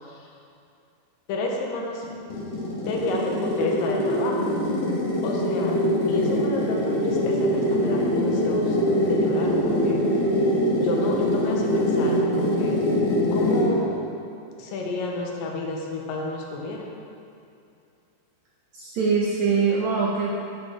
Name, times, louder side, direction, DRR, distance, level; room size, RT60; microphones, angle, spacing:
voice 1, 1.3-2.0 2.7-4.5 5.2-5.8 6.1-8.8 9.1-10.0 10.8-12.8 13.3-14.0 14.6-16.9, left 2 dB, 80° left, -1 dB, 2.5 m, -31 dB
sound 1, 2.0-13.8, equal, 50° left, 2.4 m, -23 dB
voice 2, 18.7-20.3, right 5 dB, 75° right, -4 dB, 1.7 m, -23 dB
11.0 x 5.4 x 4.9 m, 2.5 s
omnidirectional pair, 4.1 m